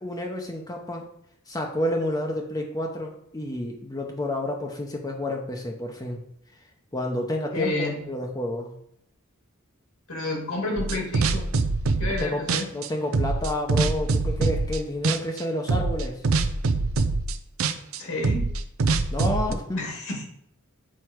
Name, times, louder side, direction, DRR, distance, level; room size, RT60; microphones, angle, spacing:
voice 1, 0.0-1.1 1.5-6.2 6.9-8.7 12.2-12.4 12.7-16.2 19.1-19.8, left 1 dB, 20° left, 1 dB, 0.7 m, -30 dB
voice 2, 7.5-8.0 10.1-11.4 12.0-12.7 18.0-18.5 19.7-20.2, left 2 dB, 75° left, 0 dB, 2.3 m, -29 dB
sound 1, 10.8-12.2 12.5-14.8 15.0-15.4 15.7-19.5, right 3 dB, 75° right, 0.5 m, -24 dB
6.5 x 4.7 x 4.5 m, 0.72 s
head